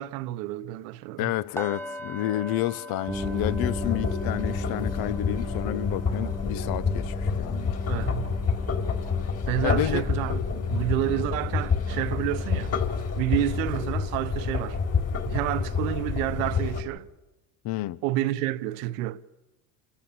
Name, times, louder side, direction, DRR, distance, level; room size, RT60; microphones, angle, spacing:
voice 1, 0.0-1.3 7.9-8.3 9.5-12.8 13.2-14.8 15.2-17.1 18.0-19.2, right 15 dB, 80° right, 1.0 m, -29 dB
voice 2, 1.2-7.8 9.6-10.1 17.6-18.0, left 15 dB, 60° left, 0.9 m, -30 dB
sound 1, 1.6-11.5 11.8-12.1 12.5-12.7, left 1 dB, 5° left, 2.0 m, -44 dB
sound 2, 3.1-16.8, left 5 dB, 35° left, 4.8 m, -28 dB
sound 3, 3.1-12.8, right 1 dB, 10° right, 0.9 m, -39 dB
29.5 x 14.0 x 7.3 m
supercardioid pair, 95°, 40 cm